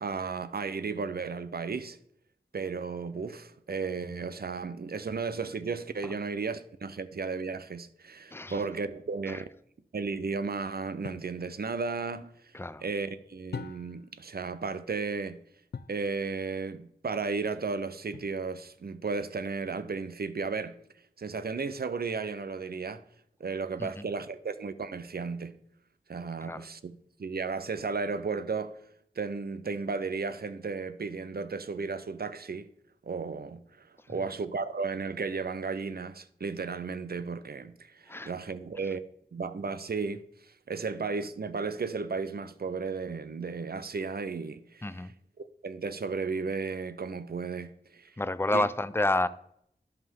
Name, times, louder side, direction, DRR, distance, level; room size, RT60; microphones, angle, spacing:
voice 1, 0.0-2.0 2.5-9.4 9.9-12.3 12.8-15.4 15.9-20.8 21.2-23.0 23.4-25.6 26.1-28.8 29.2-32.7 33.0-39.0 39.3-40.2 40.7-44.8 45.4-48.1 48.5-48.6, right 4 dB, 70° right, 0.6 m, -34 dB
voice 2, 8.3-8.6 9.3-9.4 12.5-12.8 23.8-24.1 26.4-26.7 38.1-38.3 44.8-45.1 48.2-49.3, left 2 dB, 15° left, 0.4 m, -30 dB
sound 1, 11.0-11.4 13.5-14.1 15.7-16.1 18.1-18.7, left 6 dB, 80° left, 0.4 m, -42 dB
11.0 x 5.5 x 3.6 m
wide cardioid pair, 60°, 16 cm